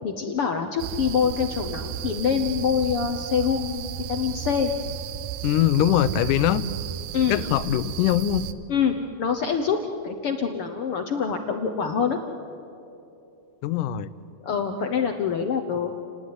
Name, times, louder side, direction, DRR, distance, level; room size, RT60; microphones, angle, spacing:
voice 1, 0.0-4.7 7.1-7.4 8.7-9.8 10.0-12.2 14.4-15.9, left 7 dB, 65° left, 5 dB, 1.5 m, -25 dB
sound 1, 0.8-8.5, right 10 dB, 80° right, 2.3 m, -33 dB
voice 2, 5.4-6.6 7.3-8.5 13.6-14.1, left 12 dB, 80° left, 14 dB, 2.2 m, -22 dB
29.0 x 19.0 x 9.6 m, 2.8 s
omnidirectional pair, 3.7 m